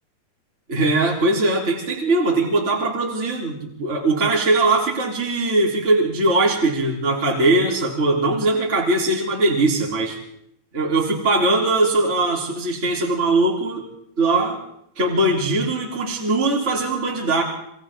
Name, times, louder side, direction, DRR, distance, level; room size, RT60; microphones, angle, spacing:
voice 1, 0.7-10.2 10.7-13.9 14.2-14.6 15.0-17.4, right 2 dB, 15° right, -3 dB, 3.4 m, -20 dB
27.5 x 26.0 x 3.7 m, 0.73 s
omnidirectional pair, 5.0 m